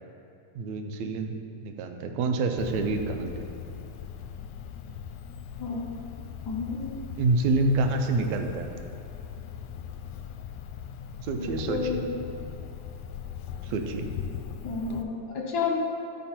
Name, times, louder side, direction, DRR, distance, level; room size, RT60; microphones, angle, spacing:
voice 1, 0.6-1.3 1.6-3.5 7.2-8.7 11.2-12.0 13.6-14.1, right 3 dB, 75° right, 5 dB, 1.8 m, -27 dB
Cricket, 2.6-15.0, left 8 dB, 85° left, 2.0 m, -40 dB
voice 2, 6.5-7.0 11.3-12.1 14.6-15.8, left 5 dB, 70° left, -2 dB, 0.9 m, -31 dB
13.0 x 4.6 x 4.3 m, 2.7 s
omnidirectional pair, 3.4 m